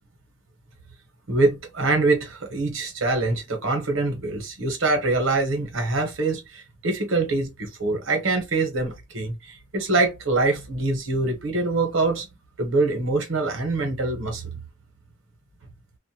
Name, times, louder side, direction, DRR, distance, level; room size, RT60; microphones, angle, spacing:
voice 1, 1.3-12.3 12.6-14.5, right 2 dB, 90° right, 1.0 m, -24 dB
2.5 x 2.1 x 2.8 m
head